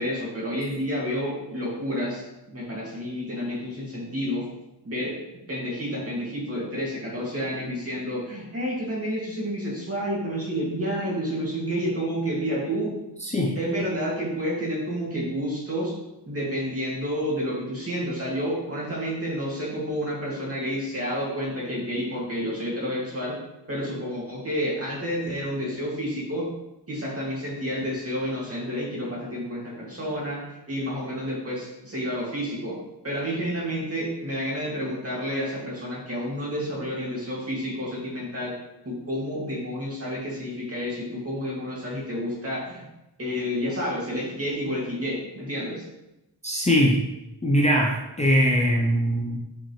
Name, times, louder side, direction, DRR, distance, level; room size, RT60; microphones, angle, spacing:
voice 1, 0.0-4.4 4.8-5.2 5.5-12.9 13.5-15.9 16.3-23.3 23.7-26.5 26.9-30.4 30.7-32.8 33.0-38.5 38.8-42.9 43.2-45.8, equal, 35° right, -5 dB, 2.3 m, -30 dB
voice 2, 13.2-13.6 46.4-47.0 47.4-49.4, equal, 15° left, -2 dB, 0.6 m, -21 dB
5.9 x 5.6 x 3.2 m, 0.92 s
wide cardioid pair, 130°, 40 cm